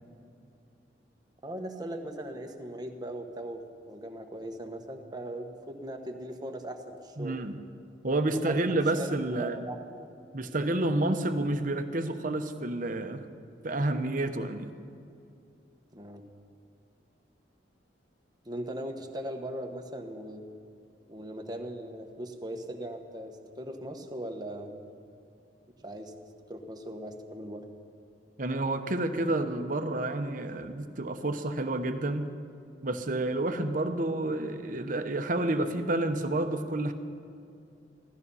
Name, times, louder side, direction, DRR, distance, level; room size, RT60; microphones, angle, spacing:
voice 1, 1.4-7.4 8.3-10.1 15.9-16.2 18.4-20.4 21.1-24.8 25.8-26.1 26.5-27.7, right 1 dB, 25° right, 4 dB, 1.2 m, -39 dB
voice 2, 7.2-7.6 8.0-9.6 10.3-13.3 13.6-14.7 28.4-32.3 32.8-36.9, right 2 dB, 50° right, 7 dB, 1.0 m, -29 dB
15.5 x 13.5 x 5.6 m, 2.5 s
head